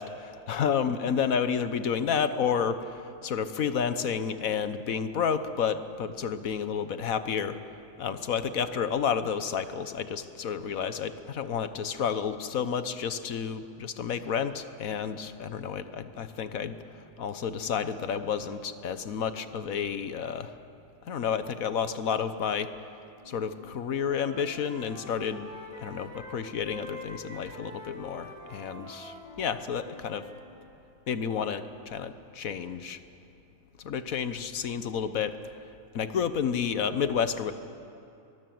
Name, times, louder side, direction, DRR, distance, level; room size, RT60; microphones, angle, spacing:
voice 1, 0.0-7.6 8.0-16.8 17.2-20.5 21.0-22.7 23.3-25.5 25.8-30.2 31.1-33.0 33.8-35.3 35.9-37.5, left 7 dB, 80° left, 11 dB, 1.5 m, -30 dB
Wind instrument woodwind instrument, 23.2-23.6 23.9-30.4, left 1 dB, 25° left, 3.8 m, -45 dB
23.5 x 20.5 x 7.8 m, 2.6 s
omnidirectional pair, 1.4 m